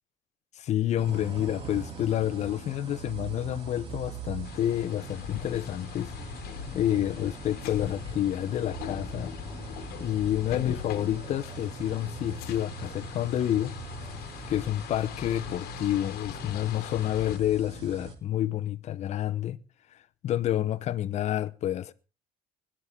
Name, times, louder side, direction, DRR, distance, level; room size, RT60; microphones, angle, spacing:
voice 1, 0.6-6.1 6.7-9.3 10.0-13.7 14.5-19.6 20.2-21.9, left 12 dB, 45° left, 0.7 m, -29 dB
sound 1, 1.0-18.1, right 3 dB, 40° right, 2.7 m, -42 dB
sound 2, 4.4-17.4, left 10 dB, 85° left, 1.4 m, -42 dB
21.5 x 11.5 x 3.7 m
cardioid pair, 180°, 16 cm